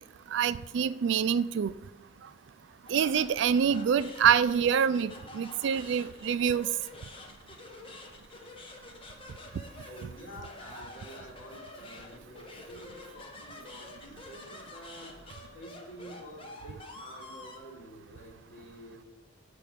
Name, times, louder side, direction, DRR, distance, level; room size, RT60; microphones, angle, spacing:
voice 1, 0.3-1.7 2.9-6.7, right 7 dB, 60° right, 16 dB, 0.3 m, -26 dB
sound 1, 2.9-17.6, left 2 dB, 25° left, 0.9 m, -48 dB
voice 2, 9.8-15.1 15.5-19.0, equal, 75° left, -2 dB, 2.3 m, -49 dB
6.7 x 5.2 x 6.4 m, 0.99 s
head